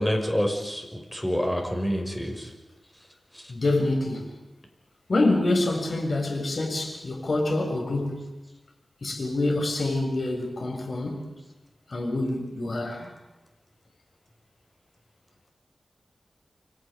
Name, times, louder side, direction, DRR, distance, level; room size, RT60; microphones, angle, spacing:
voice 1, 0.0-2.5, equal, 5° left, 6.1 m, -27 dB
voice 2, 3.5-4.3 5.1-8.2 9.0-11.3 11.9-13.1, left 2 dB, 60° left, 7.0 m, -26 dB
30.0 x 24.5 x 5.3 m
wide cardioid pair, 85°, 0 cm